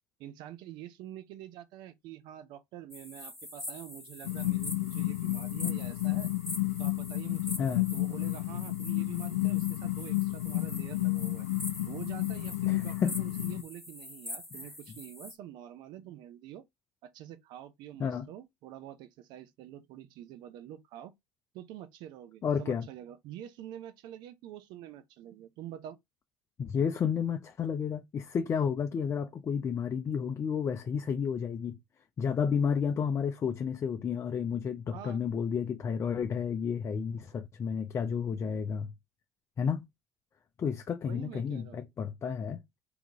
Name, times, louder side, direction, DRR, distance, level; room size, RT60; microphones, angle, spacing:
voice 1, 0.2-6.3 6.8-11.5 11.9-16.6 17.0-21.1 21.5-26.0 34.9-35.2 41.1-41.8, right 11 dB, 65° right, 0.7 m, -46 dB
sound 1, 2.9-15.4, left 1 dB, 5° left, 1.2 m, -44 dB
sound 2, 4.2-13.6, left 19 dB, 90° left, 0.4 m, -31 dB
voice 2, 12.7-13.1 18.0-18.3 22.4-22.9 26.6-31.8 32.2-38.9 39.6-39.9 40.6-42.6, left 7 dB, 35° left, 0.6 m, -31 dB
3.7 x 3.0 x 3.6 m
hypercardioid pair, 75°, 8 cm